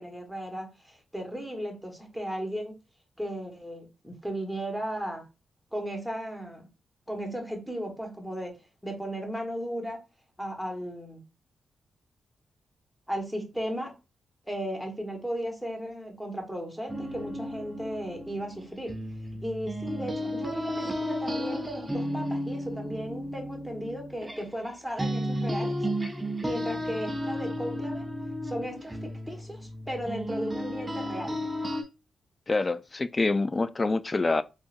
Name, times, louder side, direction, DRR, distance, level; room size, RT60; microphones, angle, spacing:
voice 1, 0.0-2.7 3.2-5.2 5.7-6.7 7.1-10.0 10.4-11.2 13.1-13.9 14.4-18.9 19.4-25.9 26.4-28.0 28.4-31.4, equal, 5° left, 1.4 m, -35 dB
sound 1, 16.9-24.7 25.0-31.8, equal, 20° right, 0.7 m, -33 dB
voice 2, 32.5-34.4, left 3 dB, 35° left, 0.3 m, -26 dB
3.7 x 2.5 x 2.5 m
supercardioid pair, 50°, 0 cm